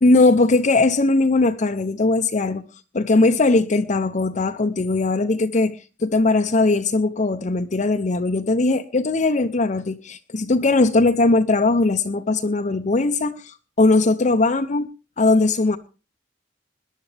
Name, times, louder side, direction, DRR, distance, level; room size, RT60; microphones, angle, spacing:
voice 1, 0.0-2.7 2.9-14.9 15.2-15.8, left 3 dB, 40° left, 0.6 m, -19 dB
21.0 x 11.0 x 3.3 m
head